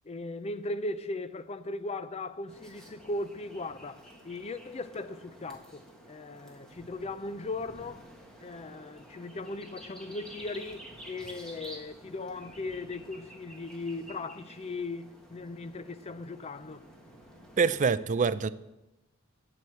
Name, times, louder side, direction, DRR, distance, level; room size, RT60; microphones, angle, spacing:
voice 1, 0.0-8.1 8.4-16.9, left 2 dB, 30° left, 0.5 m, -38 dB
sound 1, 2.5-18.0, equal, 5° left, 1.6 m, -51 dB
voice 2, 17.6-18.5, right 5 dB, 35° right, 0.4 m, -25 dB
8.6 x 7.7 x 7.8 m
head